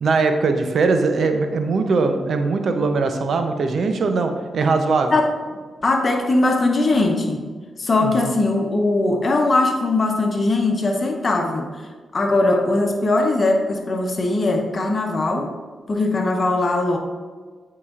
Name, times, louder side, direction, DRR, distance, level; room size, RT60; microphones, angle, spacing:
voice 1, 0.0-5.1 8.0-8.3, right 4 dB, 65° right, 6 dB, 0.6 m, -20 dB
voice 2, 5.8-7.4 7.8-11.7 12.1-15.5 15.9-17.0, left 2 dB, 45° left, 3 dB, 0.9 m, -20 dB
8.4 x 4.8 x 2.5 m, 1.5 s
cardioid pair, 70°, 0 cm